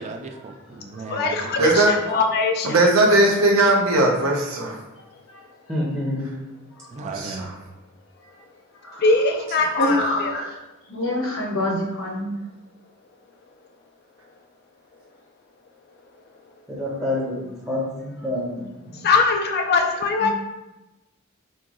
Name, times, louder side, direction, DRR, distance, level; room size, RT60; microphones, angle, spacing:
voice 1, 0.0-1.7 6.9-7.5, right 3 dB, 30° right, 5 dB, 0.4 m, -35 dB
voice 2, 1.0-2.8 9.0-10.4 19.0-20.3, left 3 dB, 50° left, 3 dB, 0.4 m, -21 dB
voice 3, 1.6-1.9 2.6-4.8 7.0-7.5, right 1 dB, 75° right, 0 dB, 0.9 m, -18 dB
voice 4, 5.7-6.3 7.2-7.4 16.7-19.0, left 1 dB, 10° right, -6 dB, 0.8 m, -28 dB
voice 5, 9.8-10.5 10.9-12.3 20.2-20.3, left 1 dB, 70° left, -1 dB, 1.2 m, -26 dB
4.4 x 3.6 x 3.0 m, 1.0 s
head